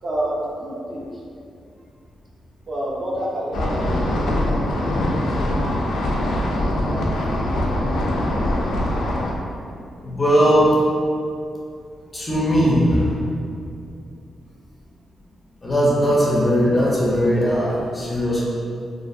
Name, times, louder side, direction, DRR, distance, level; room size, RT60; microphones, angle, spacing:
voice 1, 0.0-1.2 2.7-4.6 5.1-5.6 6.1-6.6 6.9-7.3, right 1 dB, 35° right, -6 dB, 0.4 m, -29 dB
sound 1, 3.5-9.3, left 1 dB, 85° left, 0.3 m, -22 dB
voice 2, 10.0-10.8 12.1-13.2 15.6-18.4, equal, 20° left, -6 dB, 0.4 m, -18 dB
2.3 x 2.2 x 2.5 m, 2.4 s
wide cardioid pair, 155°, 0 cm